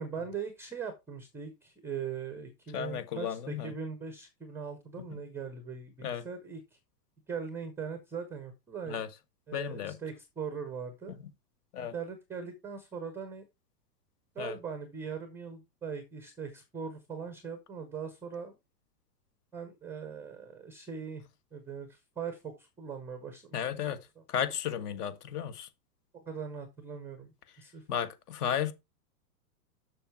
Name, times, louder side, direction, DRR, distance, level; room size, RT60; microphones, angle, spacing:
voice 1, 0.0-6.8 7.3-9.0 9.5-11.2 11.8-13.5 14.3-18.5 19.5-21.2 21.5-23.6 24.2-24.3 26.1-27.3 27.6-27.8, right 6 dB, 5° right, 0.4 m, -40 dB
voice 2, 2.7-3.7 5.1-5.2 6.0-6.2 8.9-9.1 9.5-10.0 11.7-11.9 14.4-14.6 23.5-24.0 24.3-25.7 27.9-28.7, left 9 dB, 65° left, 1.6 m, -34 dB
6.8 x 6.3 x 4.4 m
hypercardioid pair, 130°, 50 cm